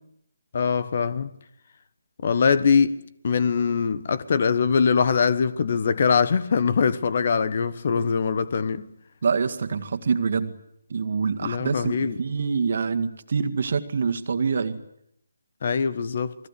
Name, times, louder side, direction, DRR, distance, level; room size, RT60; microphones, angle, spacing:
voice 1, 0.5-1.3 2.2-3.0 3.2-8.9 11.4-12.2 15.6-16.3, left 6 dB, 45° left, 1.3 m, -22 dB
voice 2, 9.2-10.5 10.9-14.8, right 5 dB, 50° right, 2.0 m, -25 dB
28.5 x 21.0 x 8.5 m
figure-of-eight pair, 150°, 0 cm